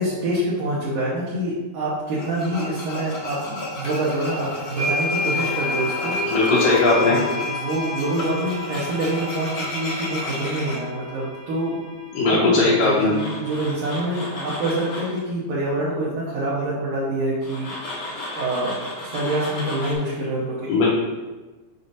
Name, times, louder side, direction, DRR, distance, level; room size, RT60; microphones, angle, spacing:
voice 1, 0.0-6.2 7.0-11.8 12.2-17.7 18.0-18.1 18.4-18.7 19.0-20.8, right 1 dB, 70° right, -7 dB, 2.6 m, -26 dB
Tools, 2.2-10.8 12.9-15.2 17.4-19.9, left 1 dB, 45° left, 1.8 m, -34 dB
sound 1, 3.8-3.9 4.8-12.8, left 3 dB, 15° left, 0.5 m, -30 dB
voice 2, 6.3-7.2 12.1-13.2 20.7-20.9, left 3 dB, 80° left, -7 dB, 2.6 m, -18 dB
6.8 x 5.8 x 2.7 m, 1.2 s
omnidirectional pair, 4.0 m